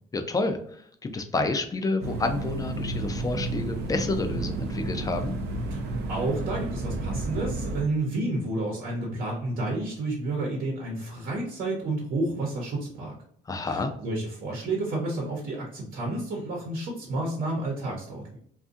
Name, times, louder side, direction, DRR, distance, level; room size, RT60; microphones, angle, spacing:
voice 1, 0.1-5.3 13.5-13.9, left 3 dB, 20° left, 6 dB, 0.4 m, -29 dB
sound 1, 2.0-7.8, right 2 dB, 80° right, 0.5 m, -31 dB
voice 2, 6.1-13.1 13.6-18.4, right 2 dB, 60° right, -2 dB, 0.9 m, -30 dB
2.6 x 2.4 x 2.4 m, 0.64 s
cardioid pair, 110°, 17 cm